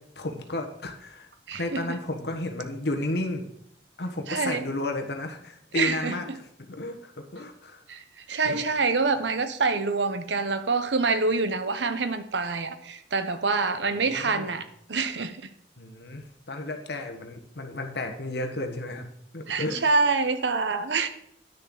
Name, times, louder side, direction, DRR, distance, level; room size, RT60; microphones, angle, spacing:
voice 1, 0.2-1.3 1.5-3.4 4.0-7.8 8.4-8.6 13.9-14.5 15.8-19.1 19.3-19.8, left 2 dB, 65° left, 4 dB, 1.3 m, -33 dB
voice 2, 1.5-2.0 4.3-4.6 5.7-6.2 7.9-8.0 8.3-15.5 19.5-21.1, right 4 dB, 75° right, 10 dB, 0.8 m, -26 dB
10.5 x 6.5 x 3.9 m, 0.75 s
head